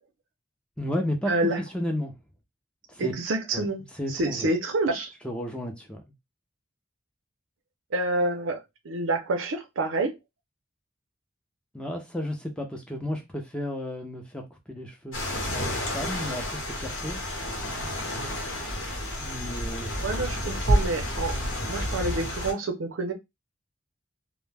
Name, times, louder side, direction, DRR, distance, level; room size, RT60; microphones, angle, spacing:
voice 1, 0.8-1.3 1.6-2.1 2.9-3.1 3.5-4.5 5.2-6.0 11.7-15.2 15.5-17.2 19.2-20.1, left 1 dB, 5° left, 0.4 m, -33 dB
voice 2, 1.3-1.6 3.0-3.8 4.1-5.1 7.9-8.6 8.8-10.1 20.0-23.1, right 2 dB, 80° right, 0.6 m, -28 dB
sound 1, 15.1-22.5, equal, 75° left, 0.9 m, -29 dB
2.1 x 2.1 x 3.2 m
head